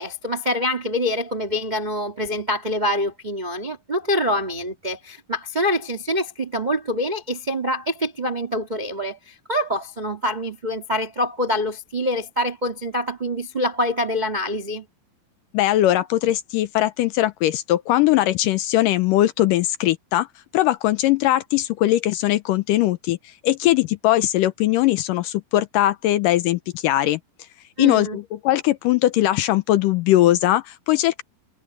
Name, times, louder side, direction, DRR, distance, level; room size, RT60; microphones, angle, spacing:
voice 1, 0.0-14.8 27.8-28.2, left 1 dB, 40° right, 0.6 m, -25 dB
voice 2, 15.5-20.3 20.5-23.2 23.4-27.2 27.8-31.2, left 14 dB, 80° left, 2.1 m, -20 dB
omnidirectional pair, 4.2 m